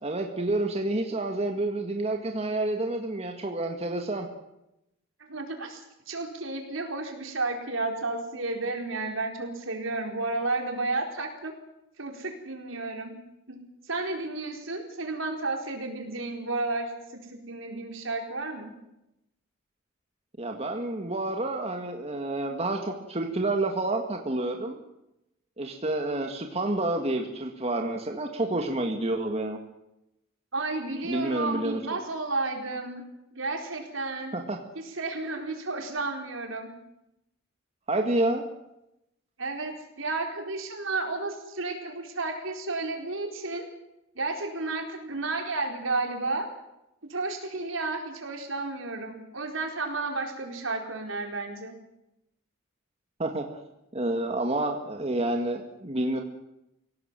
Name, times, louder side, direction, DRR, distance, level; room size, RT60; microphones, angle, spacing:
voice 1, 0.0-4.3 20.4-24.8 25.6-29.6 31.0-31.8 34.3-34.6 37.9-38.4 53.2-53.4 53.9-56.2, right 2 dB, 30° right, 3 dB, 1.9 m, -29 dB
voice 2, 5.3-11.5 12.0-13.2 13.5-13.6 13.9-18.7 30.5-33.0 33.3-34.3 34.7-36.7 39.4-43.7 44.1-46.5 47.1-51.7, right 3 dB, 75° right, 3 dB, 4.5 m, -32 dB
24.5 x 17.5 x 7.6 m, 0.88 s
head